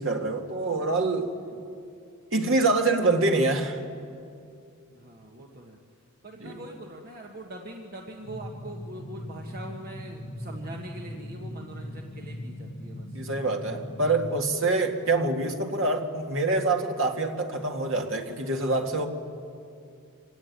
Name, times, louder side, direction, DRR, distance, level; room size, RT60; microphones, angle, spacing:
voice 1, 0.0-1.3 2.3-3.8 6.4-6.6 13.1-19.1, right 2 dB, 65° right, 3 dB, 2.1 m, -25 dB
voice 2, 4.9-5.8 6.2-13.2, right 1 dB, 45° right, 0 dB, 1.6 m, -42 dB
sound 1, 8.2-14.3, left 1 dB, 45° left, 1.3 m, -39 dB
25.5 x 17.5 x 9.6 m, 2.4 s
head